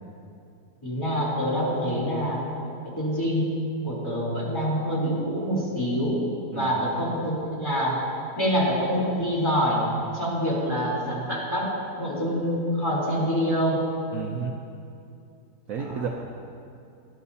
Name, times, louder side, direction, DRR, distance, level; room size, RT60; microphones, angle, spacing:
voice 1, 0.8-2.5 2.8-3.5 3.8-6.2 6.5-8.0 8.4-9.9 10.1-11.7 12.0-13.8 15.8-16.1, equal, 10° left, -7 dB, 3.6 m, -26 dB
voice 2, 6.5-6.9 14.1-14.5 15.7-16.1, right 7 dB, 60° right, 1 dB, 1.0 m, -32 dB
19.0 x 12.5 x 2.8 m, 2.5 s
omnidirectional pair, 1.8 m